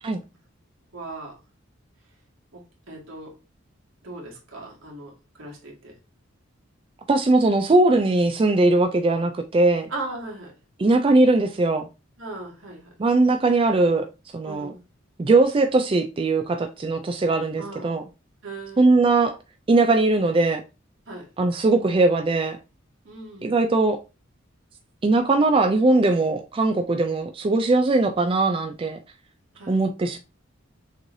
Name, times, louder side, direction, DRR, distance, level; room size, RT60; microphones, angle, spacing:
voice 1, 0.9-1.4 2.5-3.4 4.0-5.9 9.9-10.5 12.2-12.9 14.4-14.8 17.6-17.9 18.4-18.9 21.1-21.3 23.0-23.6 29.5-29.8, right 2 dB, 80° right, 1.9 m, -38 dB
voice 2, 7.1-9.9 10.8-11.9 13.0-14.1 14.3-14.7 15.2-18.0 18.8-19.4 19.7-20.6 21.4-22.6 23.4-24.0 25.0-29.0 29.7-30.2, right 2 dB, 25° right, 0.3 m, -20 dB
6.4 x 3.1 x 2.6 m
head